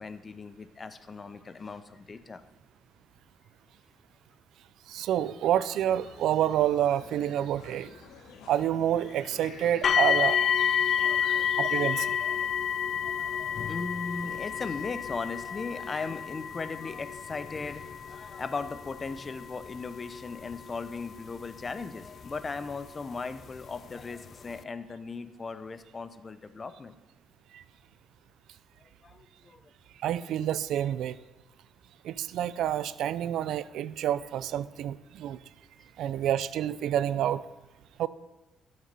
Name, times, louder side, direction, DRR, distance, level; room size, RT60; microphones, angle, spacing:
voice 1, 0.0-2.4 11.0-11.5 12.0-12.5 13.0-17.8 18.1-27.0 29.0-29.6, left 4 dB, 35° left, 12 dB, 0.7 m, -38 dB
voice 2, 4.9-8.0 8.5-10.5 11.6-12.2 27.5-27.6 30.0-31.2 32.0-35.4 36.0-37.4 38.0-38.1, right 11 dB, 80° right, 16 dB, 0.4 m, -28 dB
sound 1, 5.9-14.8, left 5 dB, 90° left, 1.4 m, -49 dB
sound 2, 9.8-22.7 23.6-23.7 24.2-24.3, left 8 dB, 55° left, 0.3 m, -30 dB
11.5 x 6.4 x 5.4 m, 1.1 s
cardioid pair, 90°, 0 cm